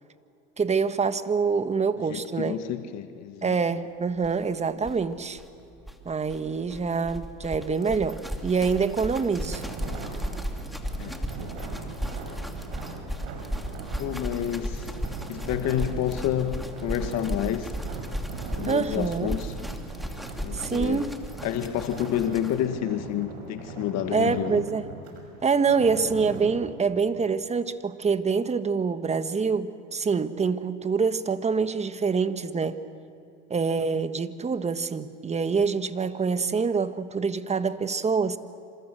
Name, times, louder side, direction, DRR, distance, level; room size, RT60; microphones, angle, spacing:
voice 1, 0.6-2.6 3.4-5.4 6.0-9.6 18.6-19.4 20.5-21.2 24.1-24.9 25.4-32.8 33.5-38.4, right 5 dB, 20° right, 1.4 m, -26 dB
voice 2, 2.1-3.5 11.0-11.5 14.0-14.9 15.3-17.7 18.6-19.5 20.4-21.1 21.4-24.7, left 11 dB, 55° left, 1.7 m, -29 dB
sound 1, 4.2-4.3 4.5-4.6 4.8-22.7, equal, ahead, 2.5 m, -35 dB
sound 2, 9.3-26.5, right 4 dB, 85° right, 6.3 m, -40 dB
27.5 x 27.0 x 7.7 m
supercardioid pair, 100°, 31 cm